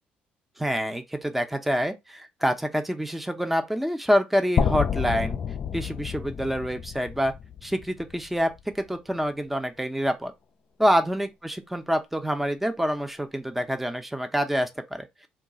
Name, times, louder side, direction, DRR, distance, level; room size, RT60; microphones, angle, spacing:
voice 1, 0.6-5.4 5.7-7.3 7.6-10.3 10.8-15.1, equal, 5° right, 0.6 m, -26 dB
sound 1, 4.6-8.6, left 7 dB, 50° left, 0.3 m, -29 dB
2.3 x 2.3 x 3.8 m
supercardioid pair, 75°, 4 cm